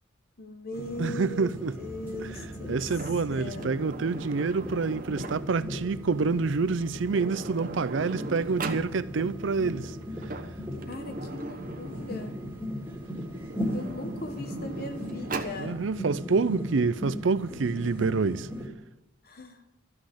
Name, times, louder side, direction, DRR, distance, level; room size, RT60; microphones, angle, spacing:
voice 1, 0.4-2.9 3.3-3.7 10.9-12.4 13.7-15.8 19.2-19.6, left 1 dB, 50° left, 1.0 m, -39 dB
sound 1, 0.7-18.7, equal, 10° right, 2.3 m, -37 dB
voice 2, 1.0-1.8 2.2-2.3 2.7-10.0 15.6-18.5, right 4 dB, 70° right, 0.5 m, -27 dB
Sliding door, 2.8-5.7 6.7-6.8 7.0-8.9 10.0-12.5 13.3-15.6, right 3 dB, 40° right, 1.1 m, -40 dB
13.5 x 6.3 x 9.8 m
head